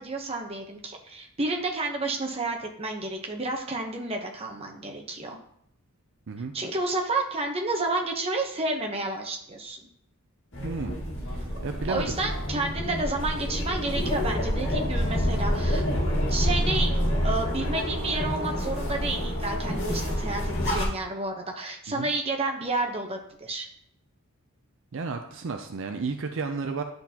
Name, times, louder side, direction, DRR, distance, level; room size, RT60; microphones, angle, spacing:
voice 1, 0.0-5.4 6.5-9.8 11.9-15.8 16.3-16.9 17.2-23.7, right 2 dB, 25° right, 2 dB, 0.9 m, -30 dB
sound 1, 10.5-20.9, equal, 55° left, 1.9 m, -28 dB
voice 2, 10.6-11.0 11.3-12.2 21.9-22.1 24.9-26.8, right 4 dB, 60° right, 6 dB, 0.5 m, -32 dB
10.5 x 3.9 x 2.9 m, 0.71 s
head